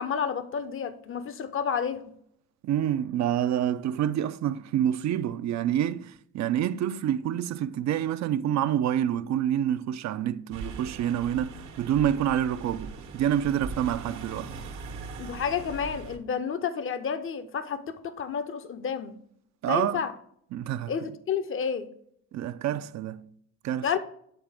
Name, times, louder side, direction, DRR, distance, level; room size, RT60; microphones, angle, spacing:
voice 1, 0.0-2.0 15.2-19.2 19.6-20.1 20.9-21.9 23.8-24.0, left 7 dB, 45° left, 0.7 m, -30 dB
voice 2, 2.6-14.6 19.6-20.0 20.5-20.9 22.3-23.3 23.6-23.9, right 10 dB, 65° right, 0.5 m, -27 dB
sound 1, 10.5-16.2, right 4 dB, 85° right, 1.2 m, -40 dB
9.1 x 4.0 x 3.5 m
cardioid pair, 90°, 30 cm